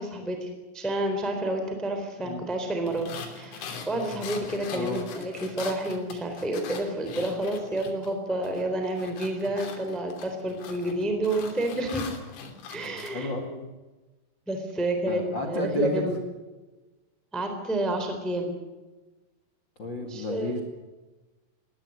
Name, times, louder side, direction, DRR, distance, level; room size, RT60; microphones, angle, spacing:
voice 1, 0.0-12.0 12.7-13.3 14.5-16.2 17.3-18.5 20.1-20.6, right 1 dB, ahead, 5 dB, 2.7 m, -30 dB
sound 1, 2.9-8.1 8.4-13.1, left 5 dB, 85° left, 5.8 m, -41 dB
voice 2, 12.8-13.7 15.1-16.0 19.8-20.6, left 2 dB, 55° left, 5 dB, 1.3 m, -31 dB
21.0 x 16.0 x 9.9 m, 1.2 s
omnidirectional pair, 5.9 m